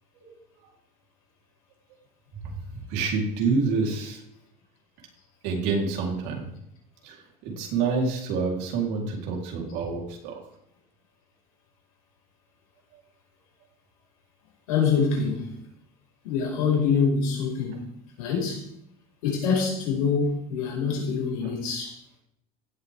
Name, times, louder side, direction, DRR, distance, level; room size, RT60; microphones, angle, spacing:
voice 1, 2.3-4.2 5.4-6.5 7.0-10.4 12.9-13.0 21.4-21.5, right 4 dB, 70° right, 4.1 m, -28 dB
voice 2, 14.7-15.5 16.2-17.8 18.2-18.7 19.2-22.0, left 5 dB, 85° left, 5.6 m, -25 dB
16.5 x 8.5 x 3.7 m
supercardioid pair, 100°, 18 cm